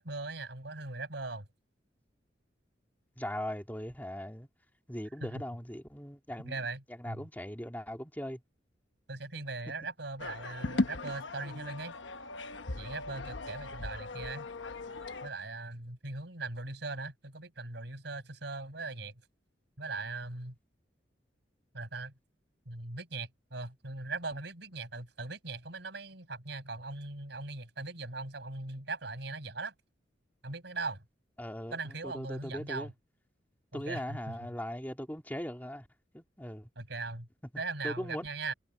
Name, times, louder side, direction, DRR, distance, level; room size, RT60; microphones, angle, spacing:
voice 1, 0.0-1.5 5.2-5.4 6.4-7.3 9.1-11.9 12.8-14.5 15.2-19.1 19.8-20.6 21.7-22.1 22.7-29.7 30.4-31.0 31.7-32.9 33.7-34.4 36.8-37.3 37.6-38.5, right 3 dB, 70° right, 5.6 m, -40 dB
voice 2, 3.2-4.5 4.9-6.5 7.0-8.4 31.4-32.9 33.7-35.9 36.1-36.7 37.8-38.3, equal, 10° left, 2.7 m, -39 dB
sound 1, 10.2-15.3, left 2 dB, 85° left, 1.1 m, -37 dB
head